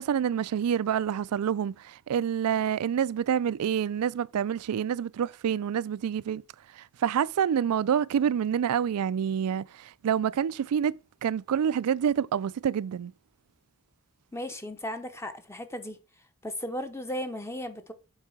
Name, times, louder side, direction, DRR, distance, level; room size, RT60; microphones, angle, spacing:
voice 1, 0.0-6.4 6.8-13.1, right 8 dB, 80° right, 0.3 m, -27 dB
voice 2, 14.3-16.0 16.4-17.9, equal, 10° left, 0.7 m, -35 dB
7.3 x 4.7 x 4.9 m
head